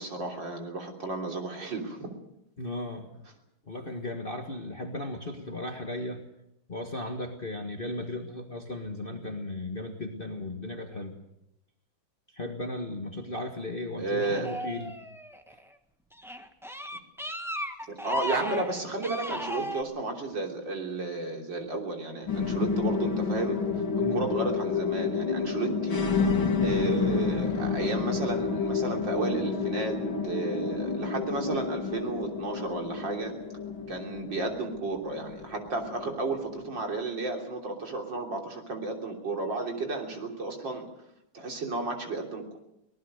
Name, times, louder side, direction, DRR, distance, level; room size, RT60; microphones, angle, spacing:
voice 1, 0.0-2.2 14.0-14.5 17.9-23.6 24.1-26.2 26.6-30.0 30.2-33.3 33.9-40.8 41.3-42.6, right 3 dB, 70° right, 2 dB, 3.9 m, -33 dB
voice 2, 2.6-3.2 3.7-6.2 6.7-11.2 12.3-14.9 15.5-15.6 24.0-24.3, left 1 dB, 30° left, 3 dB, 1.7 m, -36 dB
sound 1, 14.2-15.6 16.1-19.8, equal, ahead, 1.1 m, -36 dB
sound 2, 22.3-36.9, left 5 dB, 90° left, 2.7 m, -30 dB
24.5 x 19.0 x 6.6 m, 0.83 s
omnidirectional pair, 2.1 m